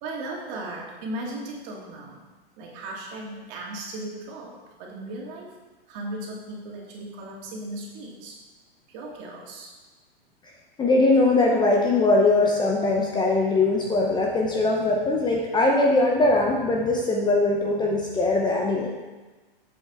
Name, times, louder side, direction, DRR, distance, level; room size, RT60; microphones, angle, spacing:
voice 1, 0.0-2.2 2.6-5.5 5.9-8.4 8.9-9.7, right 1 dB, 45° right, -2 dB, 2.2 m, -36 dB
voice 2, 10.8-18.9, left 2 dB, 15° left, -1 dB, 0.8 m, -21 dB
7.5 x 7.4 x 3.6 m, 1.2 s
hypercardioid pair, 130°, 31 cm